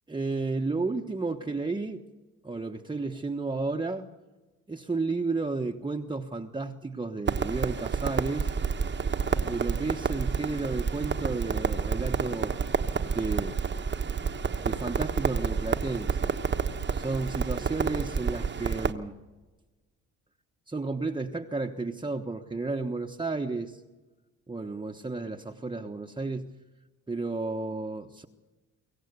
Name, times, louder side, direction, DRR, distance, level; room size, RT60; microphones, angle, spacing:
voice 1, 0.1-2.0 2.4-4.1 4.7-8.5 9.4-12.6 13.1-13.6 14.6-16.3 16.9-19.2 20.7-23.8 24.5-26.5 27.1-28.3, right 3 dB, 15° right, 2 dB, 1.2 m, -32 dB
Crackle, 7.3-18.9, right 6 dB, 35° right, 1.2 m, -29 dB
25.0 x 15.0 x 8.2 m, 1.2 s
cardioid pair, 90°, 30 cm